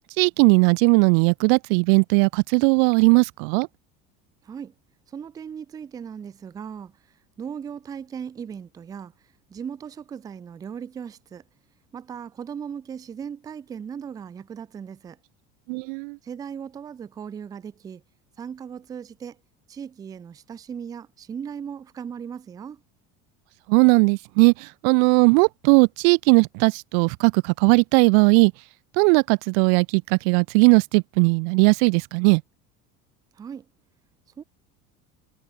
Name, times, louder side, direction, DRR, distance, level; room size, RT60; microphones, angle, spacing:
voice 1, 0.2-3.7 15.7-16.2 23.7-28.5 29.0-32.4, right 40 dB or more, 75° right, 0.4 m, -18 dB
voice 2, 4.4-4.7 5.1-6.9 7.4-9.1 9.5-11.4 11.9-15.2 16.2-18.0 18.4-19.4 19.7-22.8 33.3-33.7 34.4-34.5, right 7 dB, 15° right, 0.4 m, -37 dB
cardioid pair, 170°, 29 cm